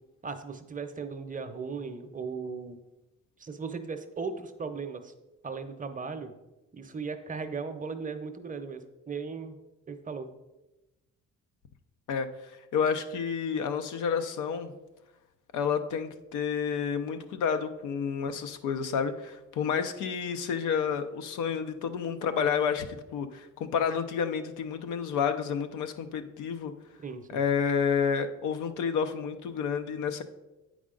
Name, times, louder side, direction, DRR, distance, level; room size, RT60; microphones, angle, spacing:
voice 1, 0.2-2.8 3.4-5.1 5.4-6.3 6.7-9.6 9.9-10.3 27.0-27.4, right 5 dB, 25° right, 8 dB, 0.7 m, -37 dB
voice 2, 12.7-14.7 15.5-26.7 27.3-30.2, left 6 dB, 85° left, 8 dB, 0.6 m, -30 dB
8.4 x 4.9 x 3.8 m, 1.0 s
cardioid pair, 90°, 30 cm